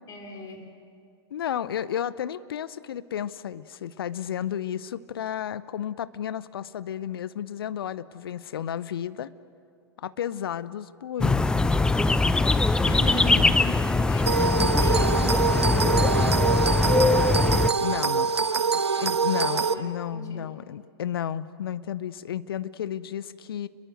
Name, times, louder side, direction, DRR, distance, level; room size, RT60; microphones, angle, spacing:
voice 1, 0.1-0.7 12.5-17.6 19.6-20.5, left 2 dB, 25° left, 3 dB, 3.7 m, -38 dB
voice 2, 1.3-9.3 10.0-11.7 13.2-13.5 17.8-18.3 19.0-23.7, left 10 dB, 60° left, 17 dB, 0.8 m, -32 dB
sound 1, 11.2-17.7, left 3 dB, 5° left, 0.6 m, -22 dB
sound 2, 14.3-19.7, right 5 dB, 80° right, 0.9 m, -24 dB
29.5 x 22.5 x 6.5 m, 2.4 s
figure-of-eight pair, 100°, 14 cm